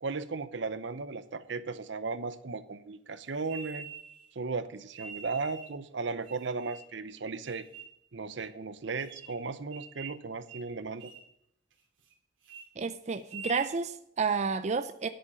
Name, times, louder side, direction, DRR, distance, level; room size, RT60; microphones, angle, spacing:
voice 1, 0.0-3.9 4.3-7.6 8.1-11.1, right 4 dB, 65° right, 14 dB, 0.8 m, -36 dB
sound 1, 3.4-4.3 4.9-5.8 6.2-7.0 7.5-7.9 8.4-8.5 8.9-9.4 9.7-10.2 10.5-10.7 11.0-11.3 11.7-12.1 12.4-12.7 13.2-13.7, right 5 dB, 80° right, 2.3 m, -46 dB
voice 2, 12.8-15.1, right 5 dB, 35° right, 10 dB, 0.5 m, -31 dB
10.5 x 8.6 x 5.0 m, 0.76 s
head